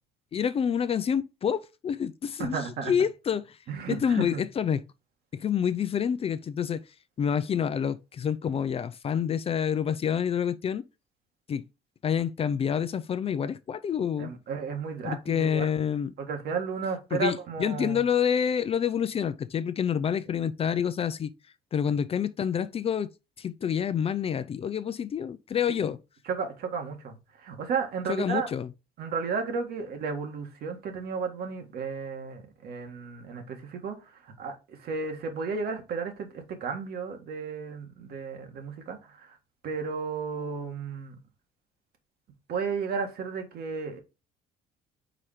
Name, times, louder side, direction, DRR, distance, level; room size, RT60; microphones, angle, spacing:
voice 1, 0.3-2.6 2.9-3.6 3.9-4.8 5.3-6.8 7.2-10.8 11.5-11.6 12.0-14.3 15.0-16.1 17.1-21.3 21.7-23.1 23.4-26.0 28.1-28.7, left 8 dB, 35° left, 0.4 m, -28 dB
voice 2, 2.4-2.9 3.7-4.4 14.2-15.7 16.2-18.0 26.3-28.5 29.0-39.4 39.6-41.2 42.5-44.0, right 5 dB, 70° right, 1.8 m, -33 dB
5.0 x 4.3 x 4.9 m
cardioid pair, 110°, 17 cm